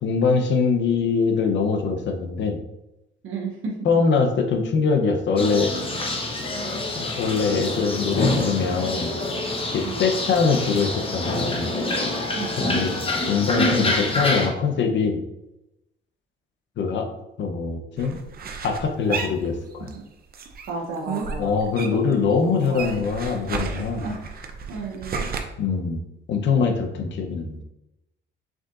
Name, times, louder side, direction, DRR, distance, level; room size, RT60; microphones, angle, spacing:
voice 1, 0.0-2.6 3.8-5.7 7.0-9.1 9.7-11.7 12.7-12.9 13.3-15.2 16.8-17.1 17.4-18.2 18.6-19.9 21.4-24.1 25.6-26.0 26.3-27.6, left 5 dB, 65° left, 4 dB, 0.7 m, -23 dB
voice 2, 3.2-3.8 9.8-10.0 12.3-12.5 20.7-21.6 22.1-23.1 24.0-24.3 24.7-25.3, right 3 dB, 80° right, -1 dB, 0.9 m, -33 dB
sound 1, 5.4-14.5, left 2 dB, 30° left, 0.9 m, -26 dB
sound 2, 18.0-20.0 20.3-22.2 22.4-25.4, right 5 dB, 50° right, 0.6 m, -32 dB
4.9 x 3.7 x 2.5 m, 0.91 s
cardioid pair, 90°, 20 cm